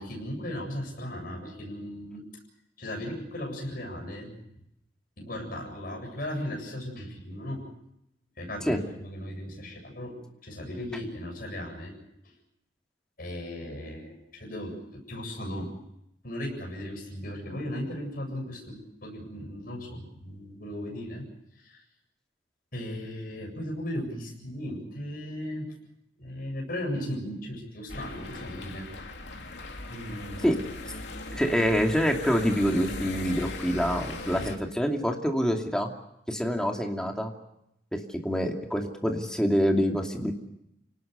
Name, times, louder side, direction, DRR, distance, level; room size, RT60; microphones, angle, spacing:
voice 1, 0.0-2.3 2.8-4.3 5.2-7.6 8.4-12.0 12.2-12.3 13.2-15.7 16.2-21.3 21.6-21.8 22.7-25.7 26.2-28.9 29.9-30.7, left 1 dB, 50° left, 1 dB, 7.9 m, -37 dB
sound 1, 27.9-34.6, left 2 dB, 70° left, 2.8 m, -39 dB
voice 2, 31.3-35.9 36.3-37.3 37.9-40.3, equal, 5° left, 2 dB, 2.6 m, -26 dB
29.0 x 19.0 x 6.8 m, 0.80 s
head